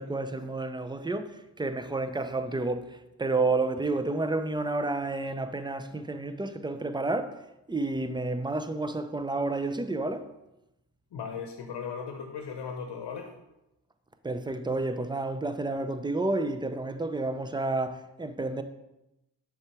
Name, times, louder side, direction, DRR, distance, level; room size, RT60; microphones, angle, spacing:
voice 1, 0.0-7.4 7.7-10.3 14.2-18.6, right 2 dB, 10° right, 0.5 m, -30 dB
voice 2, 11.1-13.3, left 6 dB, 70° left, 0.9 m, -37 dB
6.3 x 3.5 x 4.7 m
supercardioid pair, 45°, 42 cm